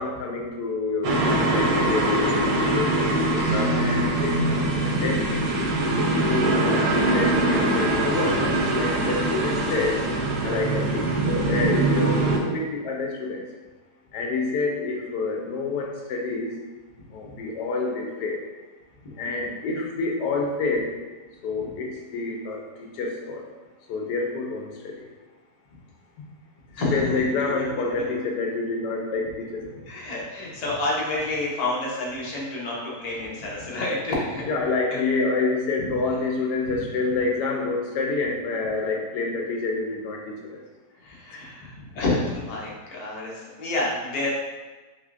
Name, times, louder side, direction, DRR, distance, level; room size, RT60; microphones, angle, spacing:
voice 1, 0.0-5.2 6.2-8.4 8.7-10.0 10.4-13.4 14.1-16.5 17.1-18.4 19.2-20.9 21.4-23.4 23.9-24.9 26.2-26.3 26.9-29.6 34.5-40.6, left 3 dB, 85° left, 1 dB, 1.2 m, -28 dB
sound 1, 1.0-12.4, right 2 dB, 70° right, 1.0 m, -23 dB
voice 2, 19.0-19.5 26.8-28.0 29.8-34.4 34.9-35.0 35.8-36.0 36.6-36.9 41.0-44.3, left 2 dB, 55° left, -4 dB, 0.4 m, -29 dB
3.4 x 3.3 x 2.5 m, 1.3 s
omnidirectional pair, 1.8 m